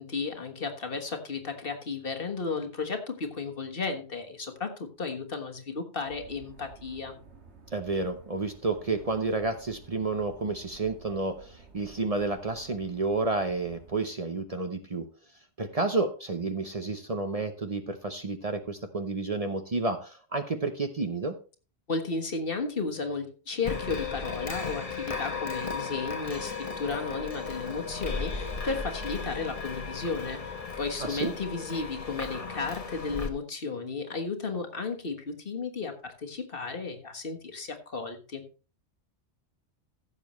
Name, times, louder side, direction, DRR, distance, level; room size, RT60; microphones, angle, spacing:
voice 1, 0.0-7.2 21.9-38.4, left 4 dB, 55° left, 4 dB, 1.6 m, -34 dB
sound 1, 6.1-14.0, right 5 dB, 75° right, 1.9 m, -53 dB
voice 2, 7.7-15.1 15.6-21.4 31.0-31.3, right 3 dB, 35° right, 7 dB, 0.8 m, -30 dB
sound 2, 23.6-33.3, left 4 dB, 35° left, 1.1 m, -36 dB
15.0 x 7.3 x 3.1 m, 0.35 s
omnidirectional pair, 1.1 m